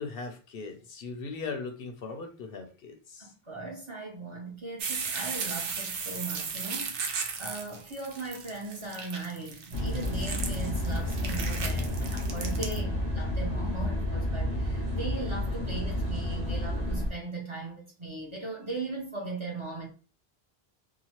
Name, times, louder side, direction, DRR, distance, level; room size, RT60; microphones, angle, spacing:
voice 1, 0.0-3.3, left 4 dB, 65° left, 0.7 m, -39 dB
voice 2, 3.2-19.9, right 3 dB, 30° right, 0.7 m, -39 dB
sound 1, 4.8-12.8, right 5 dB, 65° right, 0.7 m, -36 dB
sound 2, 9.7-17.1, left 1 dB, 90° right, 1.1 m, -30 dB
2.8 x 2.1 x 2.8 m
omnidirectional pair, 1.1 m